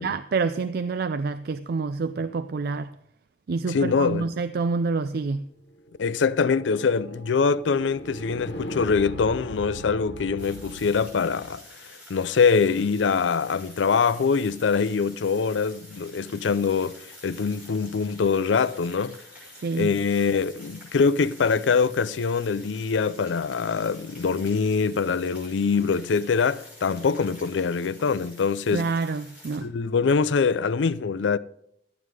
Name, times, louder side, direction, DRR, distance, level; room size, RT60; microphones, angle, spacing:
voice 1, 0.0-2.9 3.5-5.4 19.6-19.9 28.7-29.7, right 4 dB, 60° right, 0.4 m, -27 dB
voice 2, 3.7-4.3 6.0-11.6 12.1-19.2 19.7-28.9 29.6-31.4, left 5 dB, 90° left, 0.5 m, -24 dB
sound 1, 5.9-11.5, left 1 dB, 70° left, 1.3 m, -39 dB
sound 2, 10.4-29.6, left 1 dB, 10° right, 5.7 m, -48 dB
13.0 x 9.3 x 4.8 m
head